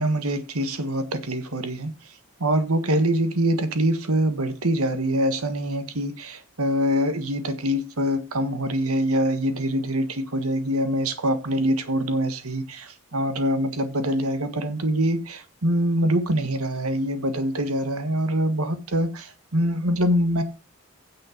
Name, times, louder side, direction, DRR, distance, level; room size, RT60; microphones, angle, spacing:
voice 1, 0.0-1.9 2.4-20.4, equal, 85° right, 1.6 m, -24 dB
9.6 x 7.7 x 5.1 m
head